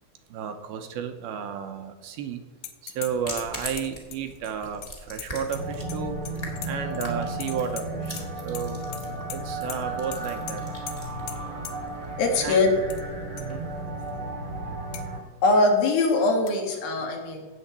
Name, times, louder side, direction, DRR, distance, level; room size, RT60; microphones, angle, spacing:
voice 1, 0.3-2.4 2.8-6.2 6.6-8.8 9.3-10.6 12.4-12.6 13.3-13.7, right 7 dB, 80° right, 6 dB, 2.6 m, -32 dB
sound 1, 2.6-3.1 3.4-6.0 6.3-7.1 7.4-8.3 8.5-9.0 9.3-9.4 9.7-9.8 10.1-10.2 10.5-10.6 10.9-11.0 11.3-11.4 11.6-11.7 12.6-13.0 13.4-13.5 14.0-14.1 14.9-15.1 16.5-16.6, left 12 dB, 85° left, 1.8 m, -39 dB
sound 2, 3.1-13.8, left 1 dB, 25° left, 0.7 m, -43 dB
sound 3, 5.5-15.2, right 2 dB, 40° right, 1.5 m, -34 dB
voice 2, 6.7-7.2 11.4-11.6 12.2-12.7 15.4-17.5, left 3 dB, 70° left, 2 dB, 3.2 m, -23 dB
17.0 x 6.9 x 4.3 m, 1.3 s
omnidirectional pair, 4.6 m